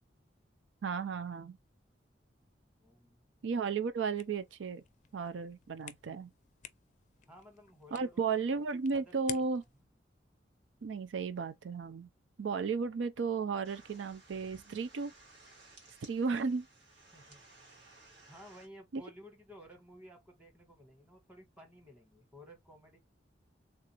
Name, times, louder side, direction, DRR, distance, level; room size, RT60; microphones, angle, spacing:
voice 1, 0.8-1.6 3.4-4.8 5.1-6.3 7.9-9.6 10.8-12.1 12.4-15.1 16.0-16.7 18.9-19.0, right 5 dB, 90° right, 0.4 m, -34 dB
voice 2, 2.8-3.2 7.2-8.6 8.9-9.4 17.1-17.4 18.3-23.0, equal, 5° right, 1.2 m, -55 dB
sound 1, 4.1-9.8, left 11 dB, 45° left, 0.4 m, -51 dB
sound 2, 13.6-18.7, right 2 dB, 75° right, 1.8 m, -59 dB
3.4 x 2.5 x 2.8 m
head